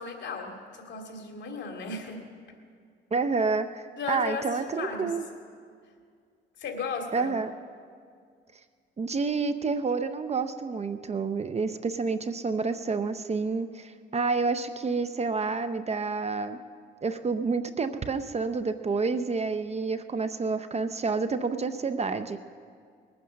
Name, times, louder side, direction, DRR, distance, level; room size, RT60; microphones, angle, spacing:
voice 1, 0.0-2.2 4.0-4.5 4.8-5.1 6.6-7.3, left 4 dB, 65° left, 2 dB, 2.5 m, -35 dB
voice 2, 3.1-5.2 7.1-7.5 9.0-16.6 17.0-22.4, right 4 dB, 35° right, 10 dB, 0.7 m, -29 dB
20.5 x 9.4 x 6.4 m, 2.1 s
cardioid pair, 90°, 20 cm